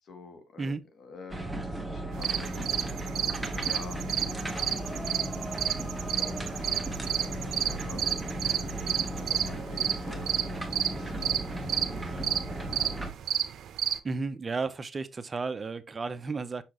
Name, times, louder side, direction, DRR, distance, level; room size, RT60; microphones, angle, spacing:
voice 1, 0.0-2.8 3.6-5.3 6.0-10.2 10.9-12.3, left 4 dB, 60° left, 1.8 m, -49 dB
sound 1, 1.3-13.1, right 1 dB, 5° right, 1.2 m, -35 dB
sound 2, 2.1-14.0, right 9 dB, 70° right, 0.7 m, -31 dB
sound 3, 4.2-8.0 9.3-9.7, left 1 dB, 15° left, 0.8 m, -46 dB
voice 2, 14.0-16.6, right 4 dB, 30° right, 0.6 m, -33 dB
6.3 x 5.8 x 2.9 m
cardioid pair, 90°, 0 cm